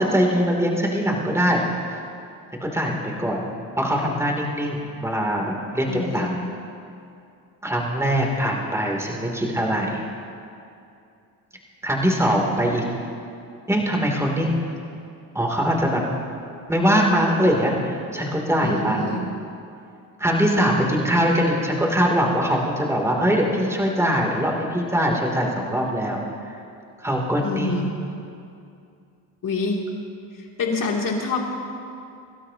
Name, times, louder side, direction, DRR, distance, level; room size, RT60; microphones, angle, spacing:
voice 1, 0.0-1.6 2.6-3.5 3.8-5.9 6.1-6.3 7.6-10.0 11.8-12.8 13.7-14.7 15.3-16.0 16.7-19.2 20.2-26.2 27.0-27.8, equal, 5° right, -1 dB, 3.0 m, -22 dB
voice 2, 5.9-6.3 18.6-19.2 27.4-27.9 29.4-29.8 30.6-31.4, left 3 dB, 50° left, -1 dB, 3.0 m, -26 dB
27.0 x 12.5 x 2.9 m, 2.5 s
supercardioid pair, 65°, 42 cm